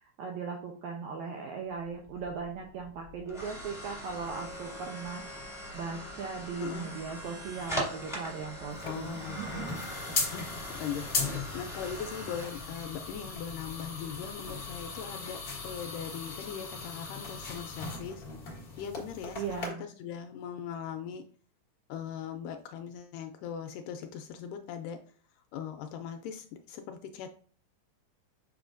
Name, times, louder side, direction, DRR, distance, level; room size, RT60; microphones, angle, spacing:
voice 1, 0.0-9.8 19.4-19.8, right 5 dB, 80° right, 2 dB, 1.7 m, -38 dB
sound 1, 1.8-14.8, equal, ahead, 1.3 m, -42 dB
voice 2, 6.6-6.9 8.8-9.7 10.1-18.2 18.8-21.3 21.9-25.0 25.5-27.3, left 8 dB, 80° left, 6 dB, 2.0 m, -40 dB
sound 2, 8.7-19.7, left 4 dB, 50° left, 1.1 m, -38 dB
7.1 x 6.2 x 2.5 m, 0.44 s
omnidirectional pair, 4.1 m